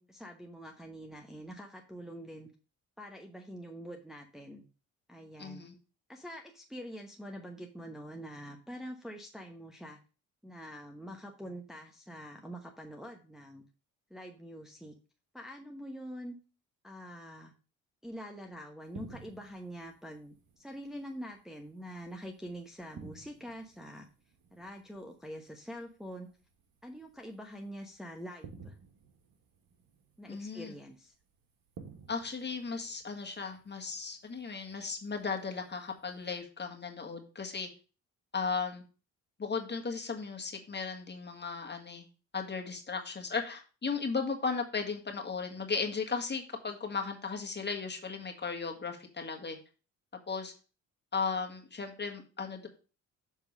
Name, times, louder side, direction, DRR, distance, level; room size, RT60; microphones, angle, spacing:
voice 1, 0.0-2.5 3.0-4.6 5.1-5.6 6.1-10.0 10.4-13.6 14.1-15.0 15.3-16.4 16.8-17.5 18.0-24.1 24.5-26.3 26.8-28.8 30.2-31.1, equal, ahead, 2 dB, 1.0 m, -45 dB
voice 2, 5.4-5.7 30.3-30.7 32.1-37.7 38.3-38.8 39.4-42.0 42.3-49.6 50.3-50.5 51.1-52.7, left 5 dB, 30° left, 3 dB, 1.7 m, -36 dB
sound 1, 18.8-36.4, right 5 dB, 70° right, 1.6 m, -56 dB
7.0 x 3.6 x 5.4 m, 0.35 s
supercardioid pair, 65°, 35 cm